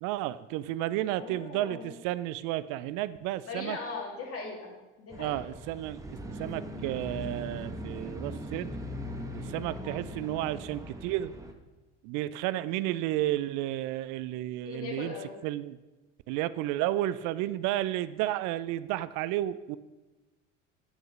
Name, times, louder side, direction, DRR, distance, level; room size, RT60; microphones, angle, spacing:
voice 1, 0.0-3.8 5.2-6.0 6.3-8.8 9.3-11.3 12.0-15.1 15.4-15.8 16.3-19.8, right 14 dB, 60° right, 16 dB, 0.5 m, -32 dB
voice 2, 1.2-1.9 3.5-4.7 5.0-5.4 9.7-9.8 14.6-15.3, left 4 dB, 40° left, 0 dB, 2.4 m, -39 dB
sound 1, 5.1-11.5, equal, 10° right, 1.0 m, -40 dB
7.6 x 4.9 x 5.5 m, 1.1 s
hypercardioid pair, 70°, 36 cm